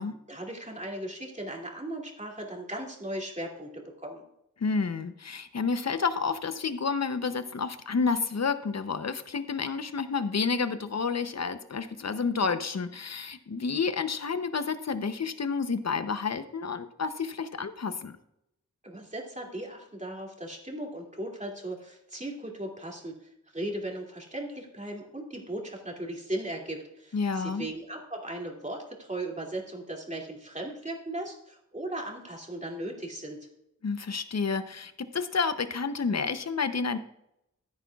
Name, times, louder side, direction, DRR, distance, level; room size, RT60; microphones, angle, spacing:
voice 1, 0.3-4.2 18.8-33.4, right 1 dB, 25° right, 0 dB, 2.6 m, -37 dB
voice 2, 4.6-18.2 27.1-27.7 33.8-37.0, left 5 dB, 55° left, 11 dB, 0.8 m, -30 dB
15.0 x 9.1 x 2.4 m, 0.80 s
wide cardioid pair, 55°, 31 cm